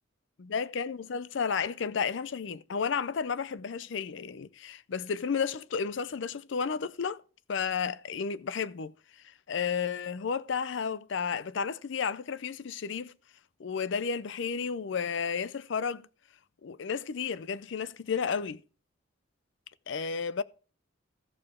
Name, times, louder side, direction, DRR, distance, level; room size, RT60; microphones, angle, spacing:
voice 1, 0.4-7.2 7.5-8.9 9.5-13.1 13.6-16.1 16.6-18.6 19.9-20.4, left 6 dB, 60° left, 0.4 m, -32 dB
14.5 x 6.7 x 3.6 m
head